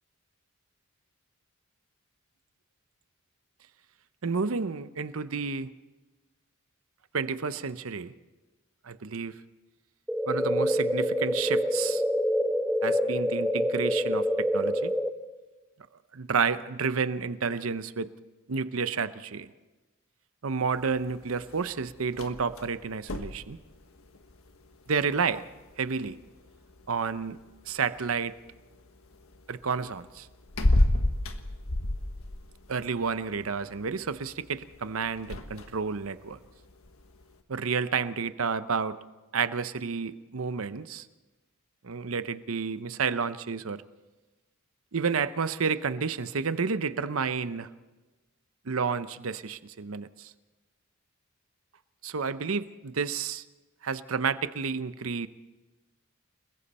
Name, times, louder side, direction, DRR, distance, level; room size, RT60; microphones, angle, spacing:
voice 1, 4.2-5.7 7.1-8.1 8.8-9.3 10.3-12.0 12.8-14.9 16.1-18.1 18.5-19.5 20.4-23.6 24.9-25.4 25.8-26.2 26.9-27.4 27.7-28.3 29.5-30.3 32.7-36.4 37.5-39.0 39.3-41.1 41.8-43.8 44.9-47.7 48.7-50.3 52.0-53.4 53.8-55.3, right 5 dB, 80° right, 13 dB, 0.7 m, -30 dB
sound 1, 10.1-15.1, equal, ahead, 0.8 m, -26 dB
sound 2, 20.7-37.4, left 1 dB, 90° left, 1.4 m, -34 dB
29.5 x 20.5 x 4.3 m, 1.2 s
head